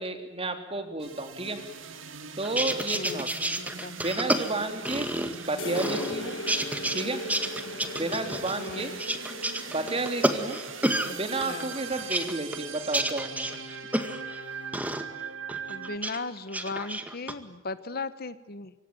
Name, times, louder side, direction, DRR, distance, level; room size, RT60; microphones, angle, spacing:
voice 1, 0.0-1.6 2.4-3.3 4.0-5.1 5.4-6.4 6.9-7.2 8.0-8.9 9.7-10.6 11.1-13.5, right 2 dB, 30° right, 6 dB, 3.5 m, -31 dB
sound 1, 1.0-16.0, right 6 dB, 70° right, 2.4 m, -41 dB
sound 2, 2.4-5.5 5.7-7.0 7.3-11.1 11.4-14.4 14.7-15.0 15.5-16.2 16.5-17.3, right 1 dB, 10° right, 2.0 m, -30 dB
voice 2, 2.9-3.3 3.6-3.9 8.6-9.0 11.0-11.1 11.5-11.7 15.7-18.7, left 3 dB, 50° left, 13 dB, 1.2 m, -37 dB
sound 3, 5.6-13.1, left 2 dB, 70° left, 1.6 m, -40 dB
26.5 x 24.5 x 9.2 m, 0.98 s
head